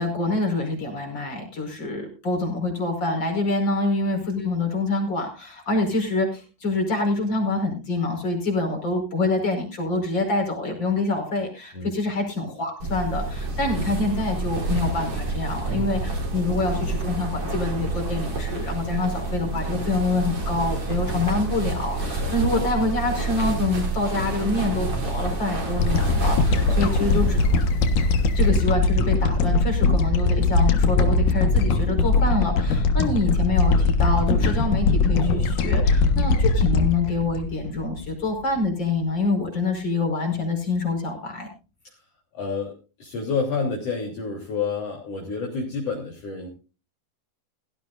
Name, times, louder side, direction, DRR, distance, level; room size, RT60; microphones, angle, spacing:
voice 1, 0.0-27.6 28.3-41.5, left 2 dB, 35° left, 3 dB, 5.7 m, -26 dB
sound 1, 12.8-28.5, right 2 dB, 45° right, 4.7 m, -28 dB
sound 2, 25.8-38.3, left 3 dB, 85° left, 3.0 m, -20 dB
voice 2, 26.5-26.8 42.3-46.5, left 4 dB, 55° left, -2 dB, 4.4 m, -29 dB
17.5 x 15.5 x 2.6 m, 0.33 s
omnidirectional pair, 3.5 m